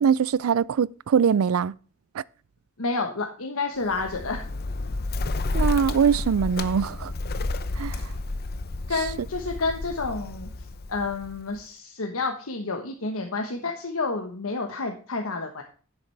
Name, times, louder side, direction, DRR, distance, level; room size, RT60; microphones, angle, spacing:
voice 1, 0.0-1.7 2.1-2.2 5.5-7.1 7.8-8.0, right 7 dB, 80° right, 0.4 m, -22 dB
voice 2, 2.8-4.4 8.9-10.5 10.9-15.6, left 3 dB, 80° left, 1.2 m, -29 dB
Bird, 3.8-11.6, left 2 dB, 50° left, 0.7 m, -31 dB
10.5 x 8.8 x 3.3 m
head